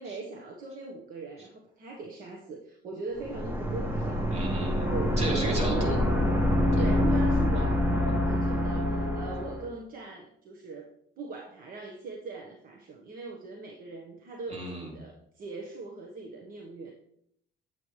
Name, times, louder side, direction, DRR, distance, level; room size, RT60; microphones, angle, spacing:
voice 1, 0.0-4.3 4.9-5.9 6.8-16.9, right 3 dB, 55° right, 1 dB, 1.4 m, -40 dB
sound 1, 3.2-9.7, left 1 dB, 10° right, 1.5 m, -26 dB
voice 2, 4.3-6.0 6.7-6.8 14.5-14.9, right 1 dB, 40° right, -1 dB, 3.2 m, -34 dB
9.0 x 8.0 x 3.3 m, 0.71 s
cardioid pair, 110°, 17 cm